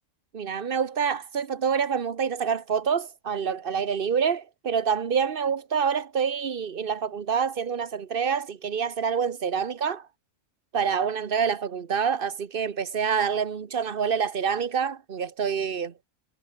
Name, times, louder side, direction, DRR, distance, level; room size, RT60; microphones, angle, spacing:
voice 1, 0.3-10.1 10.7-15.9, right 6 dB, 45° right, 1.1 m, -27 dB
omnidirectional pair, 1.3 m